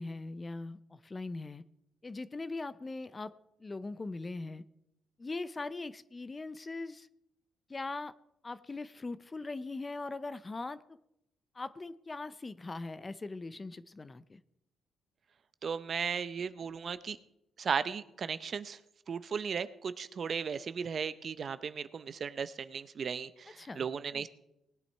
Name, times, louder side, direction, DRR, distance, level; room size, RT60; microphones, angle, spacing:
voice 1, 0.0-1.6 2.0-3.3 3.6-4.6 5.2-7.1 7.7-8.1 8.4-11.0 11.5-14.4 23.6-23.9 24.1-24.3, left 3 dB, 25° left, 15 dB, 0.6 m, -40 dB
voice 2, 15.6-17.2 17.6-18.8 19.1-24.3, right 6 dB, 50° right, 14 dB, 0.7 m, -36 dB
19.5 x 9.2 x 4.5 m, 0.83 s
cardioid pair, 90°, 0 cm